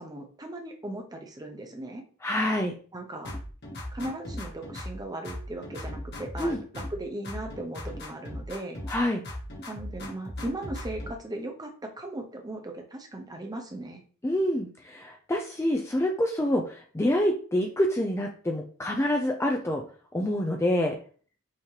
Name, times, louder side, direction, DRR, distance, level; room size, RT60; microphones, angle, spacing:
voice 1, 0.0-2.0 2.9-3.3 3.9-8.8 9.7-14.0, right 1 dB, 20° right, 3 dB, 0.7 m, -38 dB
voice 2, 2.2-2.7 6.4-6.6 8.9-9.2 14.2-19.8 20.1-21.0, left 1 dB, 10° left, 2 dB, 0.4 m, -27 dB
sound 1, 3.2-5.0 5.2-7.0 7.2-9.0 9.2-11.1, left 1 dB, 50° left, 1.2 m, -38 dB
5.7 x 2.9 x 3.1 m, 0.43 s
head